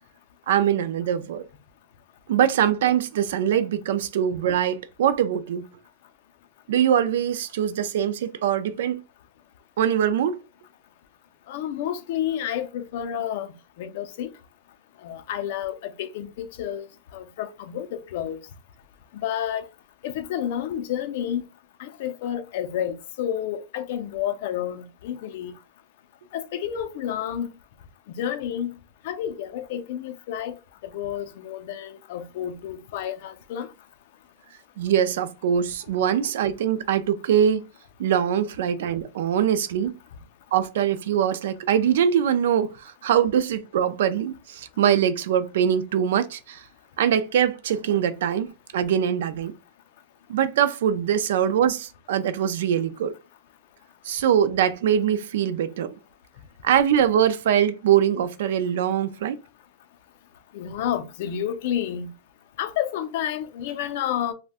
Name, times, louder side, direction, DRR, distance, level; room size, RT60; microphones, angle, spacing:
voice 1, 0.5-1.5 2.3-5.7 6.7-9.0 9.8-10.4 34.8-37.6 38.0-39.9 40.5-46.6 47.0-48.5 48.7-49.5 50.3-53.1 54.0-55.9 56.6-59.4, right 9 dB, 75° right, 0.3 m, -23 dB
voice 2, 11.5-13.5 13.8-14.3 15.0-16.9 17.1-18.4 19.1-19.6 20.0-21.4 21.8-25.5 26.3-27.5 28.1-28.7 29.0-30.6 30.8-33.7 60.5-62.1 62.6-64.3, left 10 dB, 50° left, 0.4 m, -30 dB
3.5 x 2.1 x 2.5 m
supercardioid pair, 175°, 0 cm